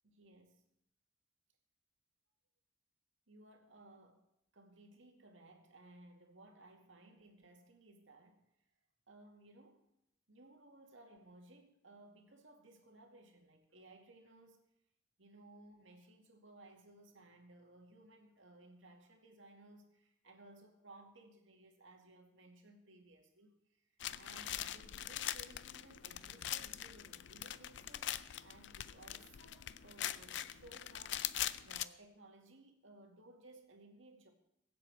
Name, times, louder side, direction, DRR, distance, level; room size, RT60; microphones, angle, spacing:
voice 1, 0.0-0.6 3.3-8.5 9.1-9.9 10.3-14.6 15.2-34.3, right 2 dB, 85° right, 2.2 m, -60 dB
sound 1, 24.0-31.8, left 12 dB, 65° left, 0.5 m, -42 dB
23.0 x 7.7 x 4.7 m
head